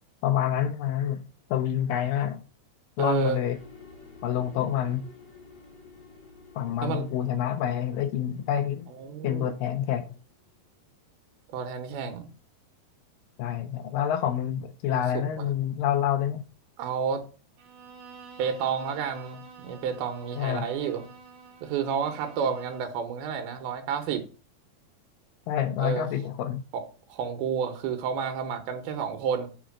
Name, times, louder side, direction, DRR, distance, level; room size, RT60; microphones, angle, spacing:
voice 1, 0.2-1.2 1.5-2.4 3.0-3.6 4.2-5.1 6.6-8.9 9.2-10.1 13.4-16.4 20.4-20.7 25.5-26.6, left 10 dB, 80° left, 2.0 m, -27 dB
voice 2, 3.0-3.4 6.8-7.1 9.0-9.5 11.5-12.3 14.9-15.0 15.4-15.5 16.8-17.2 18.4-21.0 21.6-24.2 25.8-26.1 26.7-26.8 27.1-29.5, right 7 dB, 85° right, 2.8 m, -30 dB
sound 1, 3.5-10.6, left 4 dB, 45° left, 2.3 m, -52 dB
Bowed string instrument, 17.6-23.0, right 5 dB, 65° right, 2.2 m, -48 dB
5.0 x 4.9 x 6.0 m
omnidirectional pair, 4.3 m